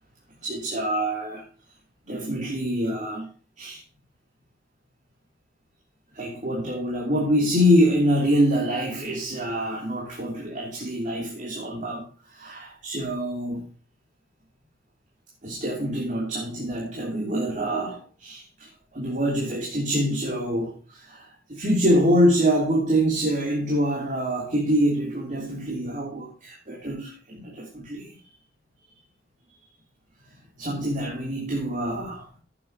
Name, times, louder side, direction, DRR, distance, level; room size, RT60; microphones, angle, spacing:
voice 1, 0.4-1.5 2.1-3.3 3.6-3.8 6.1-13.7 15.4-28.2 30.6-32.3, equal, 40° right, 3.1 m, -25 dB
15.0 x 8.2 x 2.9 m
head